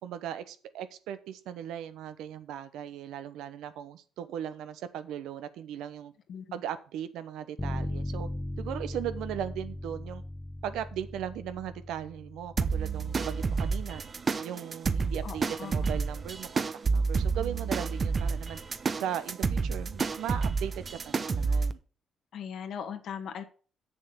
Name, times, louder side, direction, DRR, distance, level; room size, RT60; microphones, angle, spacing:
voice 1, 0.0-6.1 6.5-8.3 8.6-10.2 10.6-14.0 14.4-18.6 19.0-21.8, right 10 dB, 90° right, 11 dB, 0.9 m, -38 dB
Bass guitar, 7.6-13.8, left 1 dB, 20° left, 0.9 m, -38 dB
sound 1, 12.6-21.7, right 4 dB, 40° right, 0.8 m, -30 dB
voice 2, 15.2-15.7 22.3-23.4, left 7 dB, 70° left, 7 dB, 1.6 m, -39 dB
7.1 x 6.9 x 7.3 m, 0.40 s
cardioid pair, 90°, 0 cm